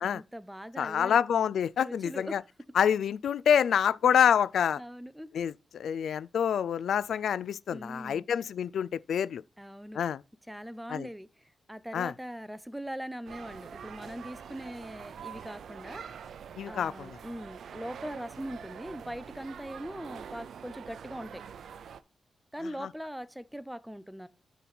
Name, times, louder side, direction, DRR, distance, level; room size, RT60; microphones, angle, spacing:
voice 1, 0.0-1.2 1.8-2.4 4.8-5.3 7.7-8.3 9.6-10.0 10.5-16.0 16.7-21.4 22.5-24.3, equal, 5° right, 0.5 m, -41 dB
voice 2, 0.8-2.4 2.8-4.8 5.3-9.4 9.9-10.2 10.9-11.1 11.9-12.1 16.6-17.2, left 8 dB, 85° left, 0.3 m, -27 dB
sound 1, 13.3-22.0, right 7 dB, 80° right, 0.5 m, -45 dB
9.1 x 4.0 x 5.8 m
wide cardioid pair, 145°, 0 cm